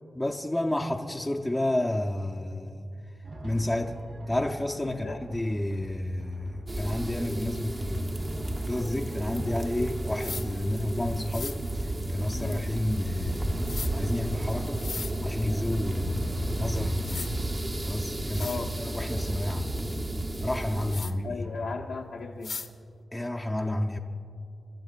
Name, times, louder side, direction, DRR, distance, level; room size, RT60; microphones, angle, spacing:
voice 1, 0.1-2.9 3.4-4.0 4.3-8.4 8.7-14.9 15.2-17.3 17.9-19.7 20.4-21.5 23.1-24.0, left 1 dB, 10° left, 0.6 m, -30 dB
Drum, 3.2-14.6 15.8-17.8 18.8-20.3 21.4-21.8, right 2 dB, 60° right, 3.3 m, -46 dB
voice 2, 4.9-5.2 12.3-12.6 18.4-18.7 21.2-22.5, left 4 dB, 85° left, 1.0 m, -36 dB
sound 1, 6.7-21.0, right 1 dB, 30° right, 0.9 m, -33 dB
sound 2, 10.2-10.5 11.3-11.6 13.7-13.9 14.7-15.1 16.6-16.7 17.0-17.3 17.9-18.0 18.3-18.6 20.9-21.1 22.4-22.7, left 4 dB, 60° left, 0.9 m, -37 dB
28.5 x 13.5 x 2.4 m
wide cardioid pair, 105°, 0 cm